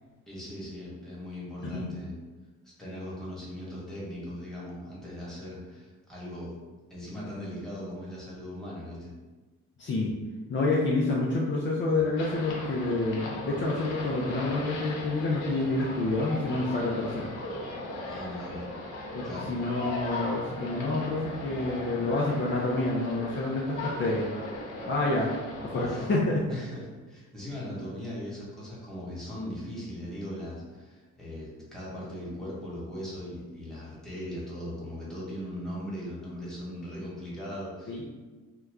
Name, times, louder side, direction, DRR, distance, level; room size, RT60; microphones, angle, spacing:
voice 1, 0.3-2.1 2.8-6.5 6.9-9.1 11.9-12.0 18.0-18.6 19.2-19.5 25.7-26.1 26.5-38.0, left 1 dB, ahead, -7 dB, 1.3 m, -39 dB
voice 2, 9.8-10.1 10.5-17.3 19.1-24.3 24.9-25.3 25.7-26.5 37.9-38.0, left 2 dB, 40° left, -4 dB, 0.5 m, -28 dB
sound 1, 12.2-26.1, left 1 dB, 80° left, 0.8 m, -38 dB
2.9 x 2.2 x 3.5 m, 1.3 s
cardioid pair, 90°, 30 cm